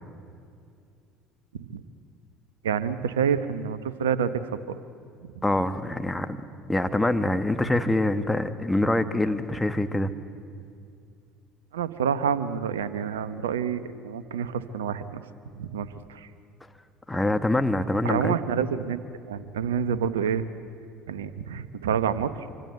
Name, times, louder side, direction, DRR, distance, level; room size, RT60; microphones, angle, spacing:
voice 1, 2.6-4.8 5.2-5.4 11.7-15.2 15.6-16.3 18.0-19.0 19.2-20.5 21.1-22.5, right 7 dB, 80° right, 13 dB, 1.0 m, -28 dB
voice 2, 5.4-6.4 6.7-10.1 17.1-18.3, left 1 dB, 10° left, 9 dB, 1.6 m, -25 dB
25.5 x 25.0 x 8.1 m, 2.3 s
hypercardioid pair, 65°, 0 cm